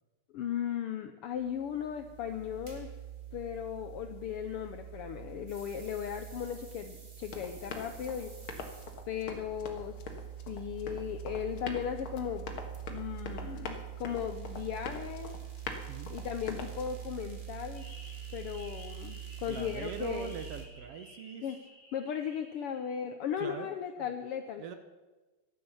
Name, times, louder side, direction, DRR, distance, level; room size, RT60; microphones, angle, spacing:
voice 1, 0.3-2.9 3.3-8.3 9.1-9.9 10.5-12.6 12.9-15.4 16.1-17.8 18.3-20.3 21.4-21.6 21.9-24.6, left 9 dB, 75° left, 7 dB, 1.3 m, -37 dB
sound 1, 1.3-20.7, right 10 dB, 25° right, 1.1 m, -45 dB
Run, 7.2-16.9, left 5 dB, 50° left, 2.0 m, -44 dB
sound 2, 17.7-23.0, left 1 dB, 30° left, 4.8 m, -53 dB
voice 2, 19.5-21.4 23.4-24.1 24.6-24.8, right 6 dB, 65° right, 8 dB, 1.6 m, -41 dB
14.0 x 10.5 x 7.1 m, 1.2 s
omnidirectional pair, 3.3 m